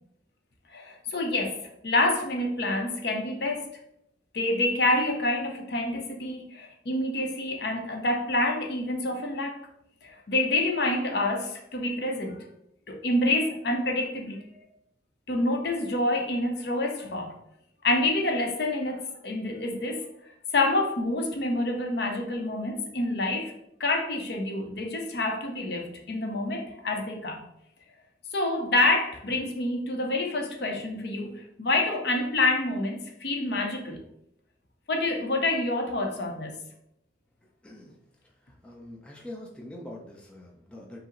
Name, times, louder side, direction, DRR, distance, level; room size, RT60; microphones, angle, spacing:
voice 1, 0.7-3.7 4.3-9.6 10.0-12.4 12.9-14.6 15.3-17.4 17.8-20.0 20.5-23.5 23.8-27.4 28.3-34.0 34.9-36.6, left 2 dB, 60° left, 3 dB, 0.6 m, -27 dB
voice 2, 37.6-38.0 38.5-41.0, left 1 dB, 5° left, -2 dB, 0.5 m, -44 dB
5.3 x 2.0 x 3.8 m, 0.78 s
head